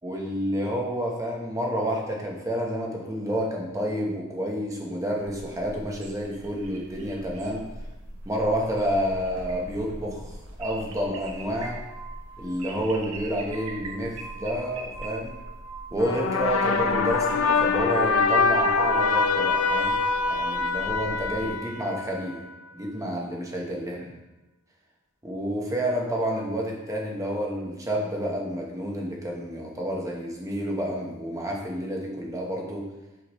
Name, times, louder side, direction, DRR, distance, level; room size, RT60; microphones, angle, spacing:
voice 1, 0.0-7.7 8.2-11.8 12.4-15.3 15.9-20.0 20.3-22.4 22.7-23.9 25.2-32.9, equal, 15° right, -1 dB, 1.0 m, -29 dB
sound 1, 5.2-21.5, right 1 dB, 85° right, 1.0 m, -42 dB
Glass, 11.0-17.8, right 5 dB, 60° left, 1.9 m, -46 dB
sound 2, 16.0-22.4, left 4 dB, 80° left, 0.4 m, -24 dB
6.1 x 5.8 x 3.1 m, 1.0 s
head